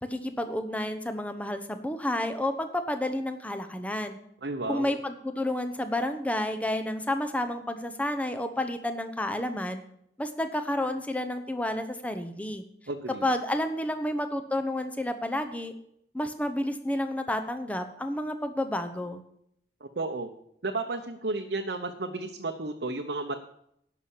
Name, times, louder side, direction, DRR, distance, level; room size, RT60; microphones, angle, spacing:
voice 1, 0.0-4.2 4.7-9.8 10.2-12.6 13.2-15.7 16.1-19.2, left 1 dB, 10° left, 7 dB, 0.9 m, -30 dB
voice 2, 4.4-5.0 12.9-13.3 19.8-20.3 20.6-23.4, right 2 dB, 70° right, 3 dB, 0.9 m, -33 dB
11.0 x 5.9 x 8.4 m, 0.72 s
head